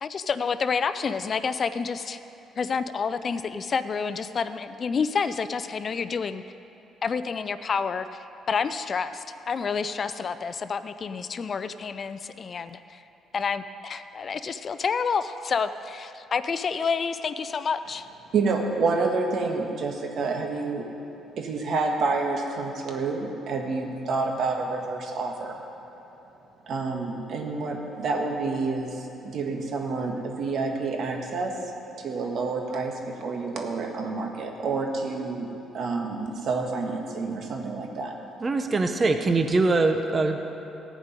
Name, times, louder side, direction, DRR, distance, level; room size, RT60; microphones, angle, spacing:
voice 1, 0.0-2.2 2.6-6.4 7.0-8.1 8.5-13.0 13.3-18.1, left 5 dB, 45° left, 12 dB, 0.4 m, -29 dB
voice 2, 18.3-20.9 21.4-25.6 26.7-31.6 32.0-38.1, right 3 dB, 60° right, 2 dB, 1.6 m, -28 dB
voice 3, 38.4-40.5, right 3 dB, 30° right, 6 dB, 0.8 m, -23 dB
15.0 x 5.2 x 9.0 m, 3.0 s
cardioid pair, 90°, 0 cm